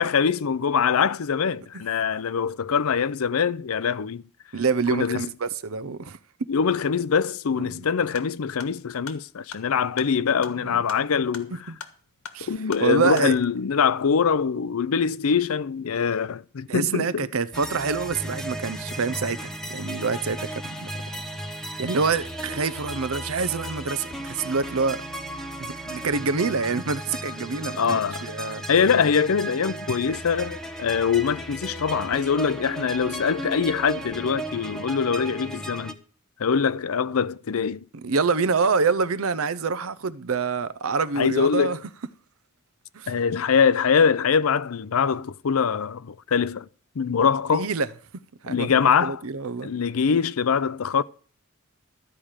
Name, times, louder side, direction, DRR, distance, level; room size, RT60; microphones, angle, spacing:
voice 1, 0.0-4.2 4.9-5.3 6.5-11.6 12.5-17.3 27.8-28.2 28.7-36.0 36.4-37.8 41.2-41.8 43.1-46.7 47.0-47.7 48.5-49.2 49.6-51.0, left 6 dB, 90° left, 0.5 m, -23 dB
voice 2, 4.5-6.2 7.7-7.9 10.6-10.8 11.7-11.8 12.3-12.5 12.8-13.4 16.7-20.9 21.8-25.0 25.6-28.6 38.0-41.8 42.9-43.1 47.5-47.9 48.4-48.7 49.0-49.7, right 4 dB, 75° right, 0.7 m, -26 dB
sound 1, 8.1-13.3, left 6 dB, 75° left, 1.4 m, -43 dB
sound 2, 17.5-35.9, right 1 dB, 5° left, 1.0 m, -35 dB
13.0 x 4.9 x 8.9 m
head